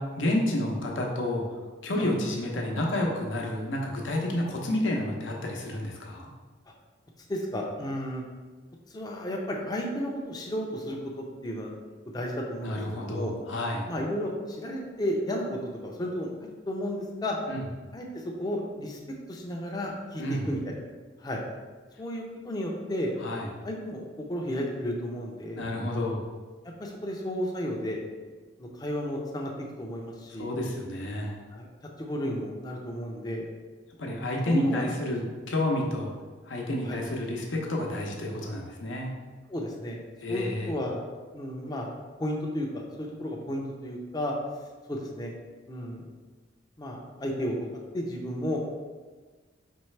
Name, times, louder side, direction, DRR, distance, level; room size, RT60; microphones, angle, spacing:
voice 1, 0.0-1.4 1.8-6.3 12.6-13.9 17.5-17.6 20.2-20.5 23.2-23.5 25.6-26.3 30.3-31.3 34.0-36.1 36.4-39.1 40.2-40.7, left 1 dB, 75° left, 0 dB, 0.7 m, -30 dB
voice 2, 7.3-8.2 8.9-11.7 12.1-13.3 13.9-16.3 16.7-17.4 17.9-19.0 19.3-20.7 21.2-21.4 22.0-23.1 23.6-25.6 26.8-28.0 28.6-30.5 31.5-31.7 32.0-33.5 34.5-34.9 36.9-37.0 39.5-40.0 40.3-41.0 41.3-41.9 42.2-44.3 44.9-45.3 45.7-46.0 46.8-47.7 47.9-48.6, equal, 20° left, -1 dB, 0.5 m, -33 dB
4.4 x 3.2 x 3.2 m, 1.4 s
head